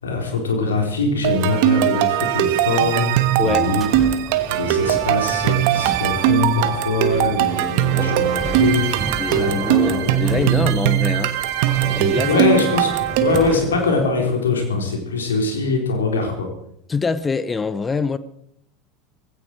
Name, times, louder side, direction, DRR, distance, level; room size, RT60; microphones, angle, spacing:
voice 1, 0.0-3.1 3.4-3.8 4.5-10.8 12.2-16.5, left 3 dB, 85° left, 4.1 m, -23 dB
sound 1, 1.2-13.5, right 12 dB, 60° right, 1.4 m, -20 dB
voice 2, 3.4-3.7 9.2-11.3 12.0-12.4 16.9-18.2, left 4 dB, 20° left, 0.9 m, -24 dB
sound 2, 3.4-14.0, right 3 dB, 20° right, 4.9 m, -33 dB
18.0 x 16.0 x 4.7 m
hypercardioid pair, 80°, 0 cm